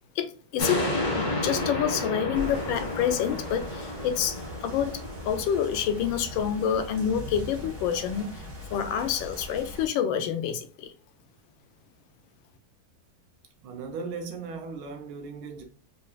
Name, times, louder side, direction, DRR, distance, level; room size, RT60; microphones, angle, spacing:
voice 1, 0.2-0.9 1.1-8.4 8.7-10.9, left 9 dB, 75° left, 1.3 m, -28 dB
sound 1, 0.6-7.2 7.7-7.8, left 1 dB, 30° left, 0.9 m, -32 dB
sound 2, 2.3-9.9, equal, 40° right, 1.4 m, -41 dB
voice 2, 13.6-15.6, right 4 dB, 85° right, 1.7 m, -37 dB
4.4 x 2.8 x 2.3 m
omnidirectional pair, 2.2 m